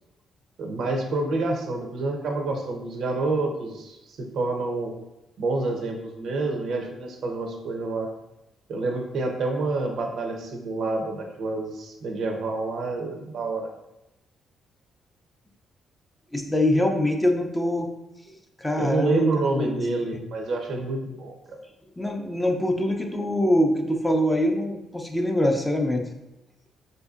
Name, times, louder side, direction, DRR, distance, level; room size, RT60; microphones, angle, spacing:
voice 1, 0.6-4.9 5.4-8.1 8.7-13.7 18.8-21.6, right 3 dB, 65° right, 3 dB, 0.6 m, -28 dB
voice 2, 16.3-17.9 18.6-19.3 19.6-19.8 20.1-20.2 22.0-26.0, left 1 dB, 10° left, 3 dB, 0.5 m, -24 dB
4.3 x 2.6 x 2.4 m, 0.92 s
cardioid pair, 90°, 0 cm